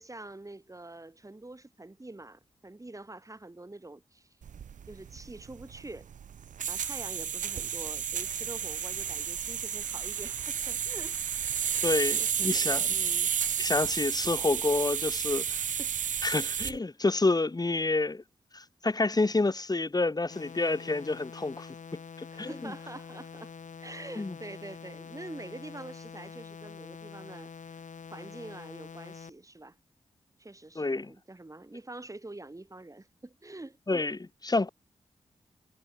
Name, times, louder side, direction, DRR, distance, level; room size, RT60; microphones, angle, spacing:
voice 1, 0.0-4.4 4.9-6.1 6.7-11.2 11.6-13.3 15.5-16.0 22.3-23.5 23.8-27.8 28.1-29.8 30.4-33.8, right 2 dB, 25° right, 5.1 m, -46 dB
sound 1, 4.4-16.8, right 8 dB, 75° right, 0.7 m, -32 dB
voice 2, 11.8-12.9 13.6-15.4 16.2-18.2 18.5-21.7 22.2-22.7 24.2-24.3 30.7-31.1 33.9-34.7, left 3 dB, 30° left, 1.6 m, -28 dB
sound 2, 20.3-29.3, left 6 dB, 70° left, 5.4 m, -46 dB
cardioid pair, 50°, 13 cm